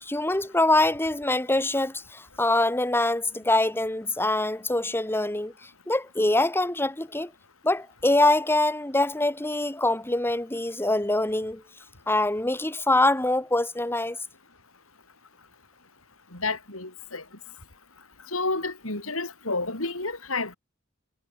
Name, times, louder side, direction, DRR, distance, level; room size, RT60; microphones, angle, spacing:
voice 1, 0.0-7.3 7.6-11.6 12.1-14.2, left 2 dB, 10° left, 1.9 m, -24 dB
voice 2, 16.3-17.2 18.3-20.6, left 3 dB, 75° left, 7.8 m, -30 dB
head